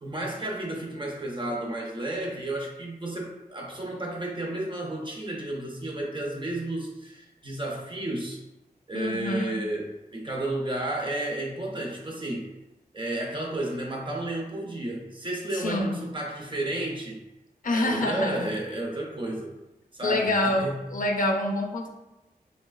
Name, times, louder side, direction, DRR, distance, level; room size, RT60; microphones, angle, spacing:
voice 1, 0.0-8.4 8.9-12.5 12.9-17.2 17.7-19.5 19.9-20.9, right 1 dB, 30° right, -1 dB, 0.6 m, -32 dB
voice 2, 8.9-9.6 15.5-16.0 17.6-18.5 20.0-21.9, left 1 dB, 60° left, 2 dB, 0.4 m, -26 dB
3.2 x 2.9 x 2.3 m, 0.99 s
wide cardioid pair, 90°, 16 cm